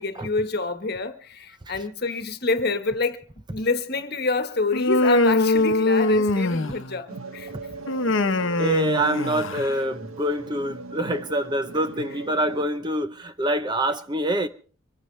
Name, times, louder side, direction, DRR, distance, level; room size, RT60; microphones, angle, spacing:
voice 1, 0.0-3.2 3.5-7.5, left 3 dB, 50° left, 1.3 m, -27 dB
Human voice, 4.7-7.0 7.9-9.7, left 2 dB, 65° left, 1.0 m, -22 dB
sound 1, 7.1-12.7, right 3 dB, 85° right, 1.3 m, -39 dB
voice 2, 8.6-14.5, right 1 dB, 20° right, 0.7 m, -25 dB
24.5 x 15.0 x 3.3 m
head